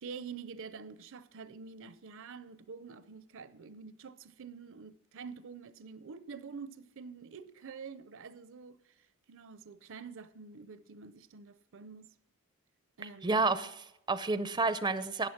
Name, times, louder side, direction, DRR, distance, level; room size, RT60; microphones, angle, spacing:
voice 1, 0.0-8.8 9.3-12.1 13.0-13.4, right 5 dB, 60° right, 0.6 m, -47 dB
voice 2, 13.2-15.3, right 3 dB, 20° right, 0.5 m, -30 dB
13.0 x 8.9 x 5.9 m
head